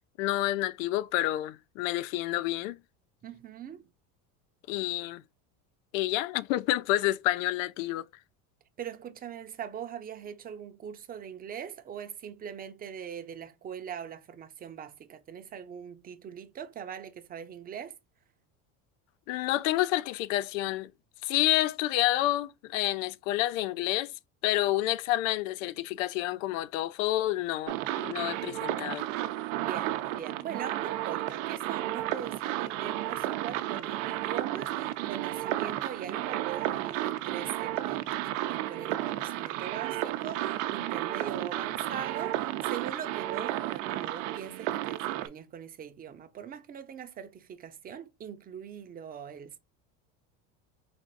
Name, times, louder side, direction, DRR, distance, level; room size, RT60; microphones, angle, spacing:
voice 1, 0.2-2.8 4.7-5.2 5.9-8.0 19.3-20.9 21.2-24.1 24.4-29.1, left 15 dB, 90° left, 0.5 m, -29 dB
voice 2, 3.2-3.8 8.8-18.0 29.6-49.6, right 8 dB, 25° right, 0.6 m, -41 dB
Chirping Machine Loop, 27.7-45.3, right 14 dB, 90° right, 0.6 m, -32 dB
4.3 x 2.5 x 3.7 m
supercardioid pair, 130°, 38 cm